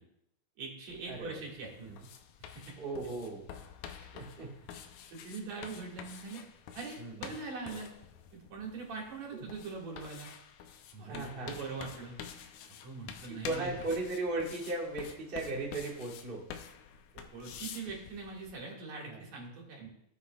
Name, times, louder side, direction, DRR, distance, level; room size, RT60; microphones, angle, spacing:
voice 1, 0.6-1.7 2.6-2.7 5.1-6.4 6.7-7.9 8.3-10.3 10.9-12.2 12.8-13.8 17.1-19.9, right 4 dB, 60° right, -2 dB, 3.1 m, -42 dB
sound 1, 0.9-18.5, left 8 dB, 75° left, 2.0 m, -49 dB
voice 2, 1.1-1.4 1.8-2.0 2.8-3.4 4.0-4.5 7.0-7.3 9.3-9.4 11.0-11.6 13.3-16.4 19.1-19.2, right 2 dB, 30° right, -2 dB, 1.0 m, -37 dB
16.0 x 8.0 x 2.3 m, 0.76 s
omnidirectional pair, 3.6 m